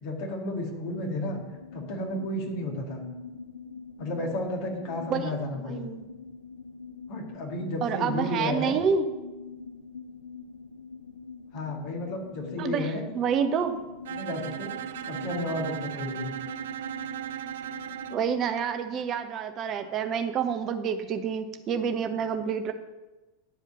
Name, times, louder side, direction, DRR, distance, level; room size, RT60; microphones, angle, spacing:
voice 1, 0.0-1.4 1.7-3.1 4.0-5.8 7.1-8.8 11.5-13.1 14.1-14.7 15.1-16.3, left 1 dB, 45° left, 1 dB, 2.1 m, -32 dB
sound 1, 0.9-18.4, left 5 dB, 80° left, 0.5 m, -44 dB
voice 2, 5.7-6.1 7.8-9.1 12.6-13.8 18.1-22.7, right 7 dB, 35° right, 8 dB, 1.0 m, -28 dB
Bowed string instrument, 14.1-18.3, right 11 dB, 60° right, 0.4 m, -36 dB
10.0 x 4.9 x 6.8 m, 1.1 s
figure-of-eight pair, 85°, 0 cm